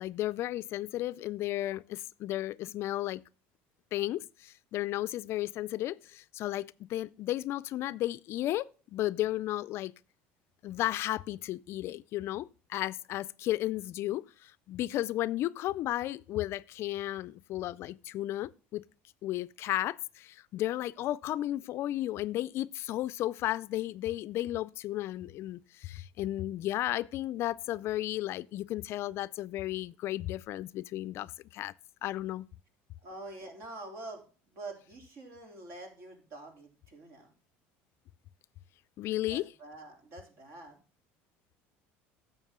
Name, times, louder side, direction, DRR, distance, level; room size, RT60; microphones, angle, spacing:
voice 1, 0.0-3.2 3.9-9.9 10.6-18.8 19.2-31.7 32.0-32.5 39.0-39.4, left 14 dB, 55° left, 0.4 m, -34 dB
voice 2, 33.0-37.3 39.3-40.8, right 2 dB, 55° right, 3.3 m, -46 dB
11.0 x 7.3 x 3.7 m
supercardioid pair, 115°, 5 cm